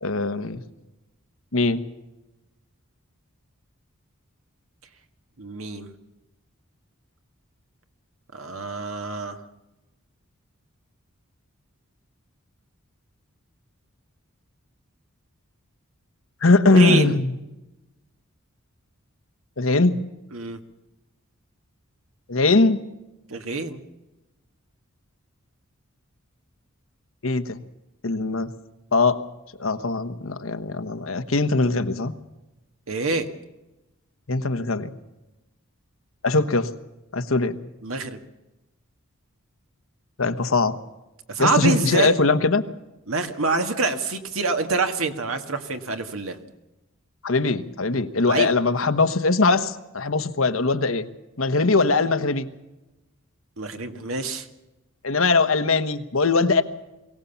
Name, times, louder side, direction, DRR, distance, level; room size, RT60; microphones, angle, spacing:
voice 1, 0.0-0.6 1.5-1.8 16.4-17.3 19.6-20.0 22.3-22.8 27.2-27.6 28.0-28.5 28.9-29.2 29.6-32.1 34.3-34.9 36.2-36.7 37.1-37.6 40.2-40.8 41.4-42.7 47.2-51.1 51.4-52.5 55.0-56.6, left 3 dB, 75° left, 10 dB, 1.2 m, -21 dB
voice 2, 5.4-5.9 8.3-9.4 16.7-17.2 20.3-20.6 23.3-23.8 32.9-33.3 37.8-38.2 41.3-42.2 43.1-46.4 48.3-48.5 53.6-54.5, right 3 dB, 80° right, 7 dB, 1.8 m, -26 dB
23.0 x 17.5 x 7.1 m, 0.98 s
head